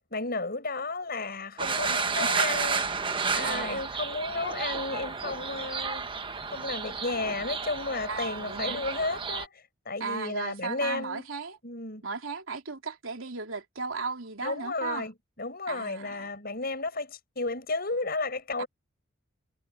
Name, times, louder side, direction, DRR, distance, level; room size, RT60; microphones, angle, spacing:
voice 1, 0.1-2.9 3.3-6.1 6.5-11.3 11.6-12.0 14.4-15.1 15.4-18.7, left 3 dB, 50° left, 7.3 m, -33 dB
sound 1, 1.6-9.5, right 5 dB, 25° right, 1.0 m, -31 dB
voice 2, 3.4-3.8 8.1-8.8 10.0-11.6 12.0-15.1 15.7-16.3 18.6-18.7, right 4 dB, 75° right, 3.3 m, -36 dB
head